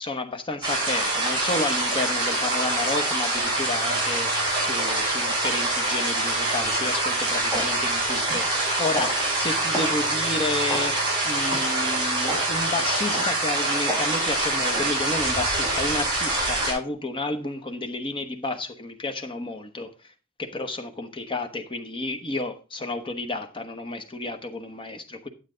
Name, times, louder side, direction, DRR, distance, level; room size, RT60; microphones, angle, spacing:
voice 1, 0.0-19.9 20.4-25.3, left 2 dB, 25° left, 1.0 m, -31 dB
sound 1, 0.6-16.7, right 2 dB, 20° right, 4.7 m, -25 dB
sound 2, 6.8-6.9 7.5-7.8 8.3-8.5 8.9-9.2 9.7-10.0 10.7-10.9 11.5-11.7 12.3-12.5 13.1-13.4 13.9-14.1 14.7-14.9 15.6-15.8, right 1 dB, ahead, 1.9 m, -32 dB
9.9 x 7.9 x 3.8 m
head